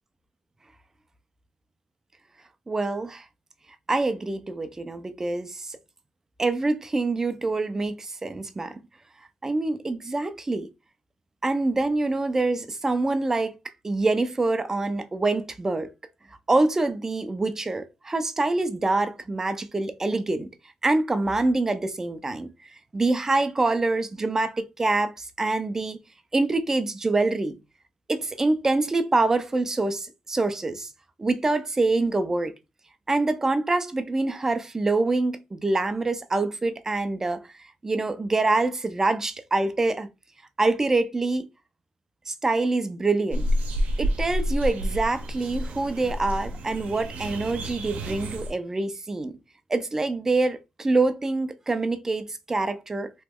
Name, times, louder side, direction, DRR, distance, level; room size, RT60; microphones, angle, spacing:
voice 1, 2.7-3.2 3.9-5.8 6.4-8.8 9.4-10.7 11.4-13.5 13.8-15.9 16.5-20.5 20.8-22.5 22.9-26.0 26.3-27.6 28.1-30.9 31.2-32.5 33.1-37.5 37.8-40.1 40.6-41.5 42.3-43.5 44.0-49.4 49.7-53.1, right 2 dB, 15° right, 0.4 m, -25 dB
sound 1, 43.3-48.5, equal, 70° right, 0.7 m, -29 dB
2.9 x 2.3 x 3.5 m
cardioid pair, 130°, 3 cm